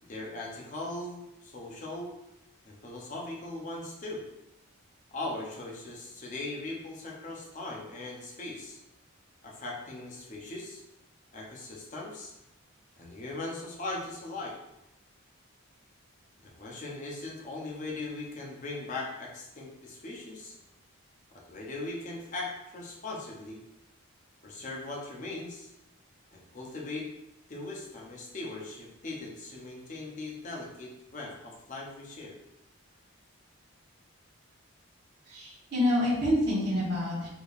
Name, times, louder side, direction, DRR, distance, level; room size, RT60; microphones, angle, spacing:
voice 1, 0.0-2.2 2.6-4.2 5.1-8.8 9.4-10.8 11.3-12.3 13.0-14.6 16.4-20.6 21.5-23.6 24.4-25.7 26.3-27.1 27.5-32.4, left 2 dB, 35° left, -2 dB, 0.6 m, -39 dB
voice 2, 35.3-37.3, left 1 dB, 50° right, -8 dB, 1.0 m, -27 dB
3.4 x 2.8 x 2.4 m, 0.88 s
head